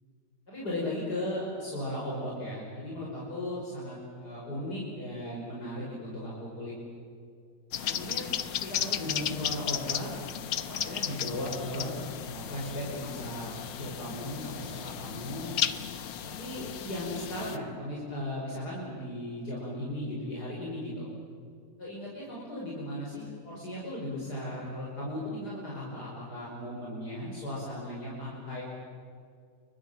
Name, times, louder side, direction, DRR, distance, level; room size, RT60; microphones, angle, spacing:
voice 1, 0.5-6.7 7.8-8.3 8.5-10.1 10.5-13.5 13.8-15.5 16.2-21.1 21.8-28.6, left 1 dB, 60° left, -5 dB, 6.2 m, -37 dB
sound 1, 7.7-17.6, left 9 dB, 85° left, 1.8 m, -35 dB
29.0 x 24.0 x 7.7 m, 2.3 s
omnidirectional pair, 1.9 m